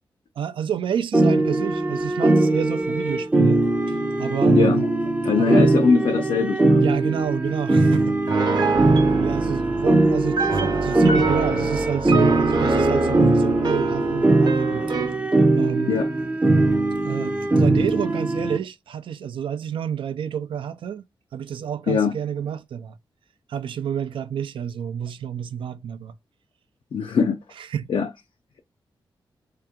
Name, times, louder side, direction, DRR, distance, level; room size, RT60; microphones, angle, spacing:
voice 1, 0.4-3.6 3.9-4.9 5.4-5.6 6.8-8.5 9.2-14.8 15.6-16.0 17.0-21.0 21.3-23.0 23.5-26.1 27.5-27.9, right 9 dB, 80° right, 0.4 m, -29 dB
sound 1, 1.1-18.6, right 2 dB, 15° right, 0.5 m, -20 dB
voice 2, 4.5-4.9 5.2-6.8 15.9-16.1 21.9-22.1 26.9-27.4 27.9-28.1, left 5 dB, 65° left, 0.4 m, -21 dB
Piano, 8.3-15.2, right 4 dB, 50° right, 0.8 m, -25 dB
3.2 x 2.9 x 3.6 m
wide cardioid pair, 110°, 9 cm